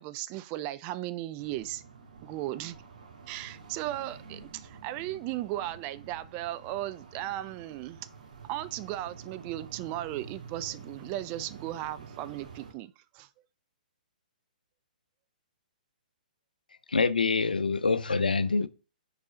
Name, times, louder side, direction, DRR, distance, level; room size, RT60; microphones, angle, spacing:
voice 1, 0.0-1.8 2.2-2.8 3.3-8.1 8.5-13.3, right 14 dB, 30° right, 0.4 m, -36 dB
sound 1, 1.4-12.7, right 5 dB, 60° right, 1.6 m, -49 dB
voice 2, 16.9-18.7, left 4 dB, 75° left, 0.5 m, -25 dB
5.3 x 4.0 x 5.0 m
figure-of-eight pair, 120°, 5 cm